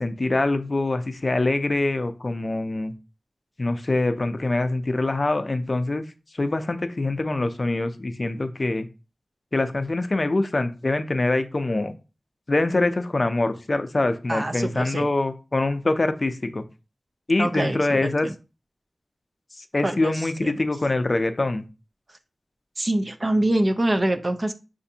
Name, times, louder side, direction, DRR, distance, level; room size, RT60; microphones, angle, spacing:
voice 1, 0.0-2.9 3.6-6.0 6.3-8.9 9.5-11.9 12.5-16.6 17.3-18.3 19.6-21.6, left 2 dB, 45° left, 9 dB, 0.4 m, -24 dB
voice 2, 14.3-15.1 17.4-18.3 19.8-20.1 20.4-20.5 22.8-24.5, right 1 dB, 40° right, 7 dB, 0.4 m, -24 dB
6.7 x 2.5 x 2.7 m, 0.31 s
wide cardioid pair, 80°, 0 cm